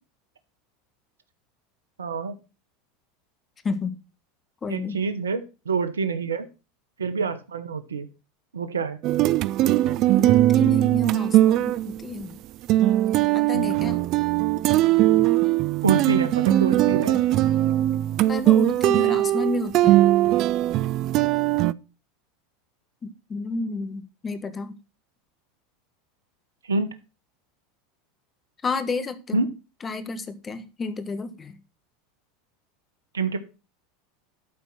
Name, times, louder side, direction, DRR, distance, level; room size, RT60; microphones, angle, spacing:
voice 1, 2.0-2.4 4.7-6.5 7.0-8.1 8.5-9.0 13.5-13.7 15.8-17.2 21.1-21.2 26.6-27.0 29.3-29.5 33.1-33.4, right 5 dB, 90° right, 12 dB, 0.9 m, -27 dB
voice 2, 3.6-4.0 4.6-5.0 10.2-12.4 13.3-14.0 18.3-20.0 23.0-24.8 28.6-29.4 29.8-31.5, left 3 dB, 25° left, 10 dB, 1.5 m, -31 dB
sound 1, 9.0-12.1 12.7-21.7, right 14 dB, 50° right, 0.4 m, -20 dB
12.0 x 4.3 x 5.9 m, 0.32 s
hypercardioid pair, 90°, 0 cm